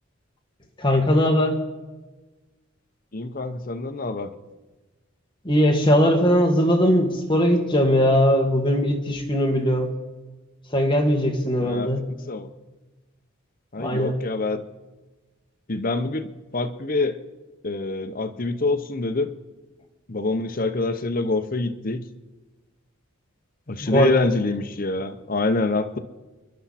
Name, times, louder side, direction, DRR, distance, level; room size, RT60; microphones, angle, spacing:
voice 1, 0.8-1.6 5.4-9.9 10.7-12.1 13.8-14.1 23.8-24.2, equal, 25° left, 1 dB, 1.9 m, -20 dB
voice 2, 3.1-4.3 11.6-11.9 12.3-12.5 13.7-14.6 15.7-17.2 17.6-19.3 20.1-22.1 23.7-26.0, left 3 dB, 40° left, 8 dB, 0.9 m, -25 dB
28.5 x 11.5 x 4.2 m, 1.2 s
head